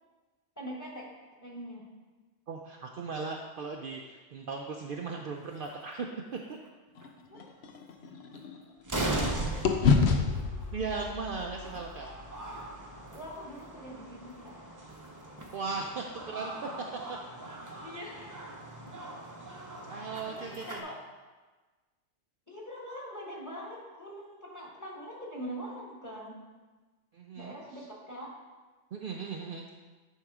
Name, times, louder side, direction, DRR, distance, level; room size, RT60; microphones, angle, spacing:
voice 1, 0.6-1.1 1.4-1.9 7.3-7.5 9.1-10.0 13.1-14.6 17.8-18.2 20.2-21.0 22.5-26.4 27.3-28.3, equal, 15° left, -3 dB, 1.5 m, -43 dB
voice 2, 2.5-6.2 6.5-6.6 10.7-12.1 15.5-16.7 17.1-17.2 19.9-20.8 27.1-27.6 28.9-29.7, right 4 dB, 60° right, 1 dB, 0.7 m, -37 dB
sound 1, 5.5-5.7 6.6-6.7 7.0-7.1 8.3-8.4 8.8-20.8, right 1 dB, 20° right, 0.8 m, -39 dB
sound 2, 6.9-9.3 9.6-13.9, left 5 dB, 65° left, 0.9 m, -30 dB
10.0 x 3.7 x 4.8 m, 1.3 s
omnidirectional pair, 1.2 m